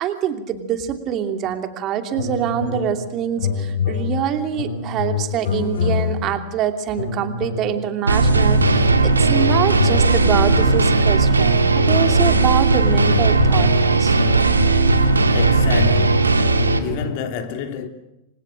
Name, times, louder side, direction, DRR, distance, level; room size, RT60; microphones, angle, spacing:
voice 1, 0.0-14.2, right 9 dB, 35° right, 2.8 m, -25 dB
sound 1, 2.1-3.1 3.3-6.4 6.9-7.8 8.1-11.2 11.7-17.1, left 6 dB, 65° left, 7.8 m, -25 dB
sound 2, 8.1-16.8, right 3 dB, 75° right, 2.3 m, -17 dB
voice 2, 15.0-16.4 16.8-17.9, left 8 dB, 45° left, 3.0 m, -30 dB
29.5 x 25.5 x 6.4 m
figure-of-eight pair, 90°, 0 cm